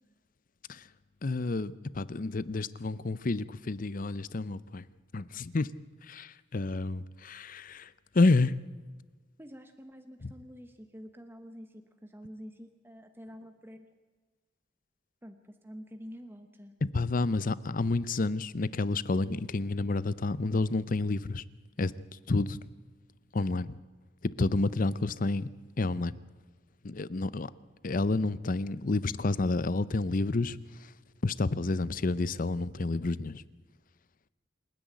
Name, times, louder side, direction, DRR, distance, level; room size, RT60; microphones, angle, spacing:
voice 1, 1.2-4.9 5.1-5.7 6.0-8.6 10.2-10.3 16.8-21.4 21.8-21.9 22.3-22.6 23.3-23.8 24.2-26.2 26.8-27.5 27.8-30.9 31.2-33.4, left 3 dB, 50° left, 18 dB, 0.7 m, -30 dB
voice 2, 9.4-13.9 15.2-16.7, equal, 10° right, 6 dB, 1.1 m, -48 dB
27.5 x 10.5 x 9.2 m, 1.3 s
head